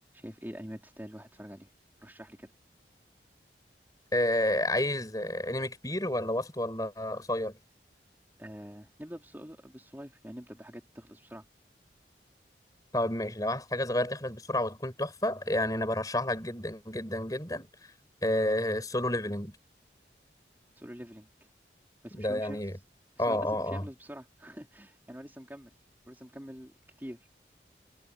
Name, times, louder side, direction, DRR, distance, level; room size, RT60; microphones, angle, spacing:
voice 1, 0.1-1.7 2.0-2.5 8.4-11.5 20.8-21.3 22.0-22.6 23.2-25.7 26.1-27.3, equal, 10° right, 4.1 m, -45 dB
voice 2, 4.1-7.6 12.9-17.9 18.2-19.6 22.1-22.7 23.2-23.8, left 1 dB, 20° left, 5.4 m, -30 dB
head